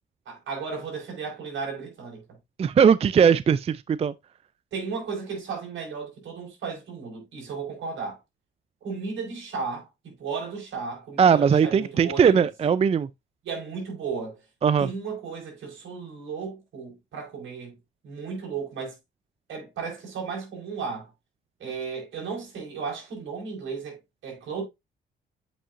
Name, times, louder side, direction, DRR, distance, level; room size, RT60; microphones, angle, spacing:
voice 1, 0.3-2.2 4.7-8.2 8.8-12.5 13.4-14.4 14.8-17.8 18.0-19.0 19.5-21.1 21.6-24.6, right 5 dB, 70° right, 5.1 m, -34 dB
voice 2, 2.6-4.1 11.2-13.1 14.6-14.9, right 7 dB, 30° right, 0.4 m, -19 dB
8.3 x 5.6 x 2.5 m
cardioid pair, 90°, 20 cm